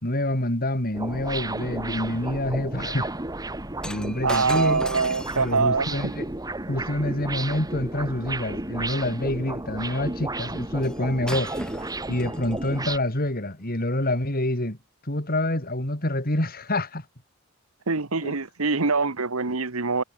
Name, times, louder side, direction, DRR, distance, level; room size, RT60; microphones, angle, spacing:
voice 1, 0.0-3.1 3.8-4.8 5.4-6.3 6.7-11.5 12.1-14.8 15.0-17.0 18.2-18.3, left 1 dB, 45° left, 4.4 m, -27 dB
sound 1, 0.9-13.0, right 2 dB, 15° right, 1.7 m, -33 dB
Shatter, 3.8-8.2 10.8-11.0 11.3-12.8 13.5-13.7, left 1 dB, 5° left, 3.3 m, -40 dB
voice 2, 4.2-5.9 17.9-20.0, right 4 dB, 80° right, 1.5 m, -24 dB
head